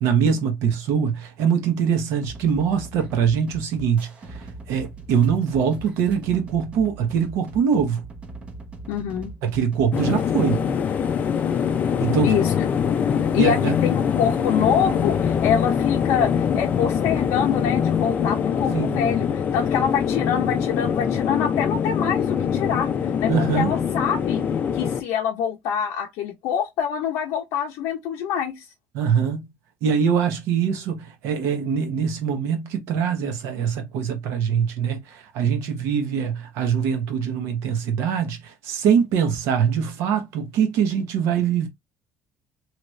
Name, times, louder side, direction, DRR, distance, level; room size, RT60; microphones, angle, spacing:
voice 1, 0.0-8.0 9.4-10.7 12.0-12.4 13.4-13.8 18.7-19.0 23.3-23.8 28.9-29.4 29.8-41.7, right 7 dB, 75° right, 0.8 m, -23 dB
sound 1, 2.2-10.2, right 2 dB, 25° right, 0.6 m, -40 dB
voice 2, 8.9-9.3 12.2-12.5 13.3-22.9 23.2-24.4 24.7-28.6, left 8 dB, 85° left, 0.7 m, -25 dB
sound 2, 9.9-25.0, left 7 dB, 30° left, 0.4 m, -23 dB
2.9 x 2.4 x 3.1 m
cardioid pair, 175°, 5 cm